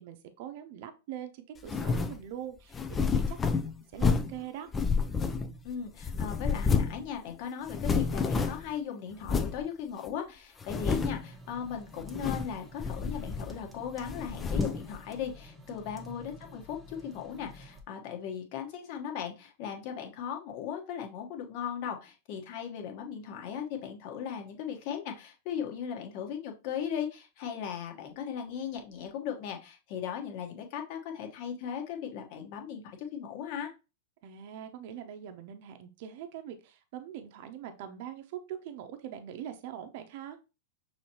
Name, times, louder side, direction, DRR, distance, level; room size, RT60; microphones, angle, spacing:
voice 1, 0.0-4.7 15.7-15.9 34.2-40.4, right 10 dB, 55° right, 6 dB, 0.7 m, -43 dB
sound 1, 1.6-2.2 2.7-4.4 4.7-5.7 6.0-7.0 7.3-7.4 7.7-8.7 9.2-9.6 10.1-10.2 10.6-11.3 12.0-12.5 12.8-13.7 14.0-14.9, left 5 dB, 20° left, 0.4 m, -29 dB
voice 2, 5.6-33.7, left 8 dB, 50° left, 3 dB, 1.2 m, -38 dB
sound 2, 10.7-17.8, equal, 5° right, 1.0 m, -50 dB
6.2 x 2.9 x 2.9 m, 0.29 s
hypercardioid pair, 105°, 0 cm